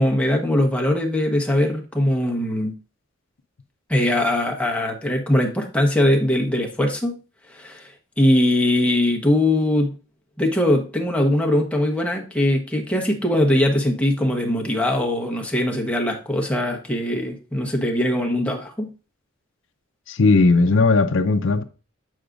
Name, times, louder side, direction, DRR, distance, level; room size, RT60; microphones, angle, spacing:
voice 1, 0.0-2.7 3.9-7.2 7.5-7.9 8.2-9.9 10.4-18.9, left 1 dB, 5° left, 1.1 m, -21 dB
voice 2, 20.1-21.6, left 3 dB, 65° left, 0.6 m, -17 dB
7.8 x 6.4 x 2.5 m
head